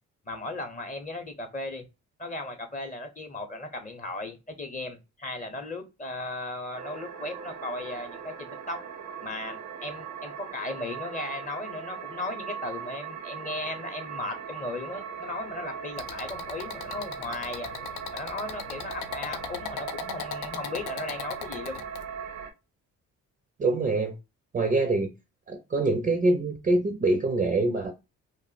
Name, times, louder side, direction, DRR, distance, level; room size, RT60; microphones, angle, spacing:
voice 1, 0.2-1.8 2.2-8.9 9.2-17.7 18.1-21.8, left 2 dB, 25° left, 0.7 m, -36 dB
sound 1, 6.7-22.5, right 7 dB, 80° right, 0.8 m, -39 dB
sound 2, 16.0-22.0, left 8 dB, 85° left, 0.5 m, -39 dB
voice 2, 23.6-24.1 24.5-25.1 25.5-27.9, right 2 dB, 25° right, 0.5 m, -24 dB
2.5 x 2.0 x 3.9 m
cardioid pair, 90°, 30 cm